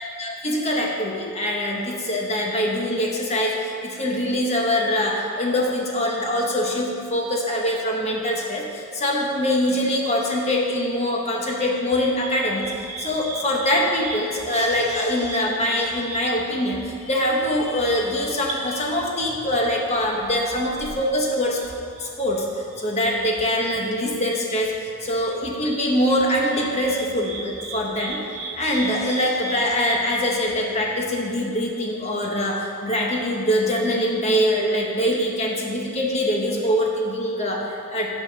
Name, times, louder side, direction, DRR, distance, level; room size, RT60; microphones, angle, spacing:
voice 1, 0.0-21.6 22.0-38.1, left 1 dB, 30° left, -1 dB, 0.9 m, -23 dB
sound 1, 11.9-30.6, right 3 dB, 75° right, 0.9 m, -38 dB
9.7 x 4.2 x 6.2 m, 2.5 s
head